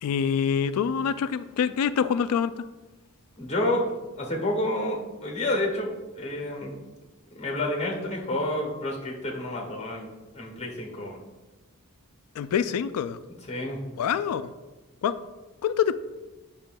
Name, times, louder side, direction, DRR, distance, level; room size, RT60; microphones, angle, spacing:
voice 1, 0.0-2.6 12.4-13.2 14.0-14.5 15.0-15.2 15.6-15.9, left 7 dB, 75° left, 16 dB, 0.3 m, -25 dB
voice 2, 3.4-3.9 4.2-6.8 7.3-10.1 10.3-11.2 13.5-13.8, left 1 dB, 30° left, -1 dB, 1.5 m, -29 dB
8.6 x 6.0 x 2.2 m, 1.1 s
head